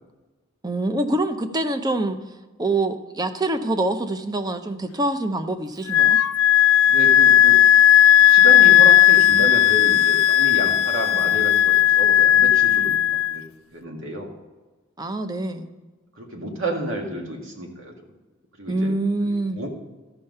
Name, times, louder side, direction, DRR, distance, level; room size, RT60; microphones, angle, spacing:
voice 1, 0.6-2.2 2.6-6.2 15.0-15.7 18.7-19.6, right 2 dB, 20° right, 9 dB, 0.7 m, -25 dB
Wind instrument woodwind instrument, 5.9-13.3, left 12 dB, 85° left, 0.4 m, -15 dB
voice 2, 6.9-7.6 8.2-13.4 13.7-14.3 16.1-18.1 18.6-18.9 19.2-19.7, right 1 dB, 80° right, 1 dB, 2.0 m, -31 dB
13.5 x 5.6 x 5.4 m, 1.3 s
head